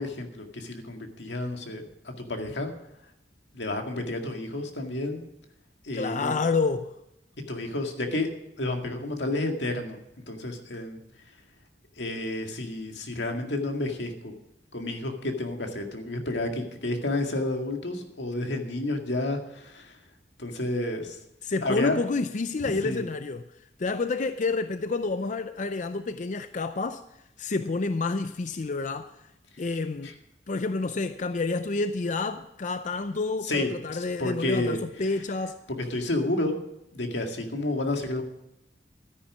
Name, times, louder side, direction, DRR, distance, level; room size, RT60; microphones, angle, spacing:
voice 1, 0.0-1.8 2.2-2.7 3.5-5.2 5.8-6.4 7.5-8.3 8.6-10.0 10.3-11.0 12.0-14.3 14.7-20.0 20.4-21.2 21.6-22.0 22.8-23.1 30.0-30.1 33.4-34.8 35.8-36.6 36.9-38.2, left 2 dB, 85° left, 2.1 m, -30 dB
voice 2, 5.9-6.9 21.4-23.5 23.8-27.0 27.4-29.1 29.6-30.1 30.5-35.6, left 3 dB, 45° left, 0.5 m, -29 dB
13.0 x 10.0 x 6.1 m
head